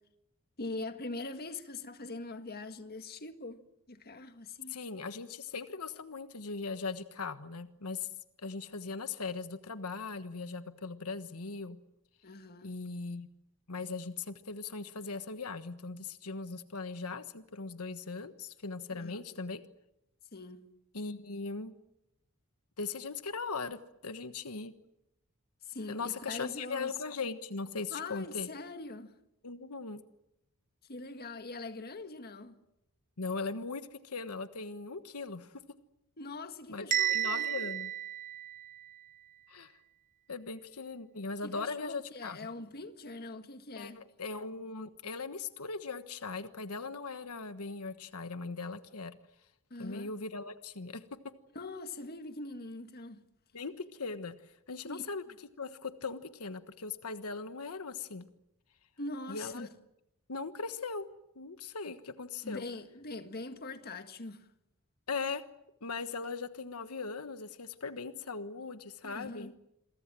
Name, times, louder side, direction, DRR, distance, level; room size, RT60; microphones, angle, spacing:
voice 1, 0.6-3.6 3.9-4.7 12.2-12.7 18.9-19.2 20.3-20.7 25.6-26.9 27.9-29.2 30.9-32.6 36.2-37.5 41.4-44.0 49.7-50.1 51.6-53.2 54.8-55.0 59.0-59.7 62.4-64.5 69.0-69.5, left 3 dB, 45° left, 1.8 m, -42 dB
voice 2, 4.7-8.1 8.4-11.8 12.6-13.3 13.7-19.6 20.9-21.7 22.8-24.7 25.9-28.5 29.4-30.0 33.2-35.6 36.7-37.9 39.5-39.8 40.3-42.4 43.7-49.1 49.8-51.0 53.5-55.2 55.6-58.3 59.3-59.7 60.3-61.1 61.3-62.6 65.1-65.4 65.8-69.5, left 4 dB, 80° left, 1.3 m, -39 dB
Bell, 36.9-38.9, right 10 dB, 35° right, 1.0 m, -32 dB
28.5 x 23.0 x 7.7 m
head